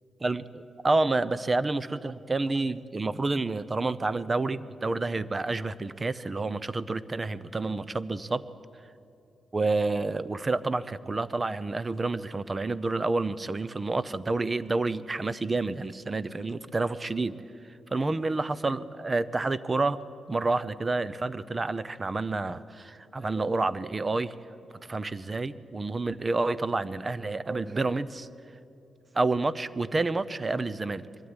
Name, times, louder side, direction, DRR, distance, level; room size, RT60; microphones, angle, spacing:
voice 1, 0.2-8.4 9.5-17.4 17.9-20.0 20.3-24.3 24.9-28.3 29.1-31.0, right 3 dB, 25° right, 16 dB, 0.6 m, -29 dB
22.5 x 12.5 x 9.8 m, 2.7 s
cardioid pair, 115°, 0 cm